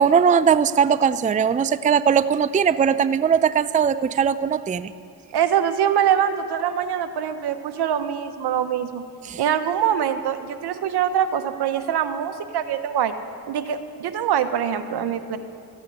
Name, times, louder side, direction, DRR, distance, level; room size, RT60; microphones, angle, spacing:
voice 1, 0.0-4.9 9.3-9.4, right 7 dB, 20° right, 15 dB, 0.4 m, -19 dB
voice 2, 5.3-9.0 9.4-13.1 13.5-15.4, right 9 dB, 75° right, 10 dB, 1.0 m, -23 dB
14.0 x 8.8 x 9.6 m, 2.4 s
cardioid pair, 70°, 40 cm